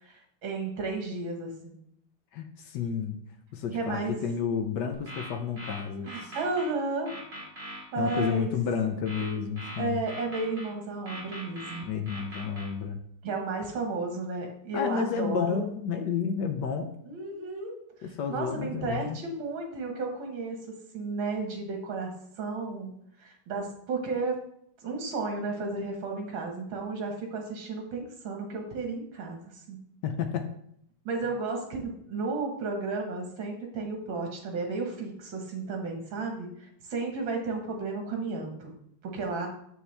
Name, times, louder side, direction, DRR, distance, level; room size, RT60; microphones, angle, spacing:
voice 1, 0.0-1.8 3.7-4.1 6.0-7.1 7.6-8.5 9.8-11.9 13.2-15.6 17.1-17.8 18.0-22.9 23.2-24.4 24.8-29.8 31.0-38.7 39.0-39.5, right 3 dB, 65° right, 2 dB, 2.2 m, -33 dB
voice 2, 2.3-3.2 3.5-6.3 8.0-10.0 11.8-13.0 14.7-16.9 18.0-19.2 30.0-30.5, left 6 dB, 70° left, 6 dB, 1.1 m, -31 dB
sound 1, 4.9-6.7 7.1-8.3 9.1-10.7 11.1-12.7, equal, 30° right, 3.0 m, -41 dB
7.1 x 6.6 x 3.4 m, 0.72 s
omnidirectional pair, 2.3 m